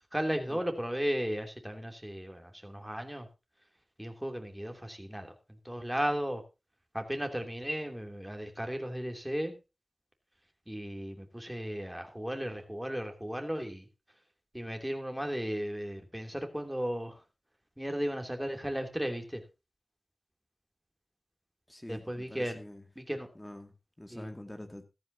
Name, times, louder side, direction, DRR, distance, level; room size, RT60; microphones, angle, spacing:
voice 1, 0.1-3.3 4.0-6.4 6.9-9.5 10.7-13.9 14.5-17.2 17.8-19.4 21.9-22.6 23.0-23.3 24.1-24.3, equal, 5° right, 4 dB, 3.0 m, -35 dB
voice 2, 21.7-22.8 23.3-24.8, left 1 dB, 20° left, 6 dB, 2.2 m, -46 dB
14.0 x 14.0 x 2.8 m, 0.28 s
wide cardioid pair, 55°, 0 cm